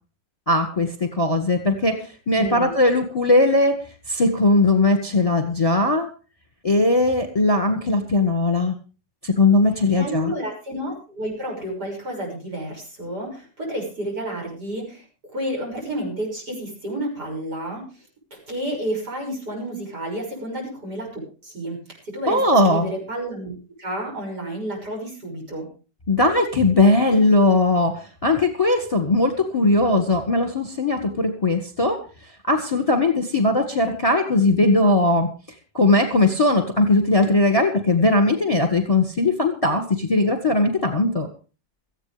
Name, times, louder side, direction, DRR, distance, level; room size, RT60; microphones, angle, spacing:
voice 1, 0.5-3.8 4.1-6.1 6.6-8.7 9.2-10.3 22.3-22.9 26.1-32.0 32.5-35.3 35.7-41.3, left 2 dB, 20° left, 6 dB, 1.7 m, -19 dB
voice 2, 2.3-2.7 9.9-15.1 15.3-22.4 22.7-23.5 23.8-25.7, right 1 dB, 60° right, 0 dB, 7.0 m, -31 dB
18.0 x 14.5 x 3.4 m, 0.35 s
omnidirectional pair, 2.0 m